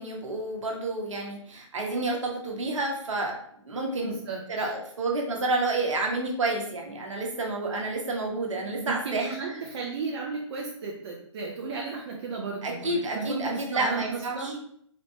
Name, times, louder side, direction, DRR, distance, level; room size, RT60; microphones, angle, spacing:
voice 1, 0.0-3.3 3.6-4.2 4.5-9.3 12.6-14.5, right 2 dB, 75° right, 1 dB, 1.2 m, -29 dB
voice 2, 4.0-4.7 8.8-14.6, right 4 dB, 55° right, -2 dB, 0.7 m, -34 dB
4.2 x 2.9 x 3.2 m, 0.64 s
hypercardioid pair, 140°, 16 cm